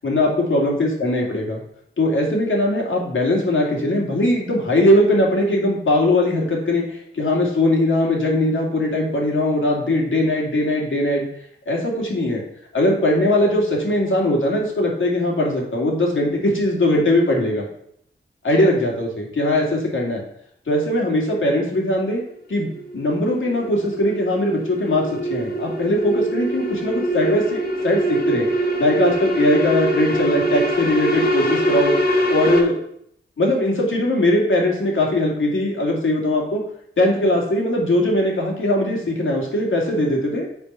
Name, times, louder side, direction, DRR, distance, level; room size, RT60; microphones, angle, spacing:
voice 1, 0.0-1.6 2.0-11.3 11.7-12.4 12.7-17.7 18.4-20.2 20.7-22.2 22.5-32.0 32.3-32.8 33.4-36.6 37.0-40.5, left 1 dB, 70° left, -1 dB, 2.4 m, -20 dB
sound 1, 22.1-32.6, right 1 dB, 50° left, 1.8 m, -23 dB
6.9 x 4.5 x 5.6 m, 0.69 s
cardioid pair, 55°, 21 cm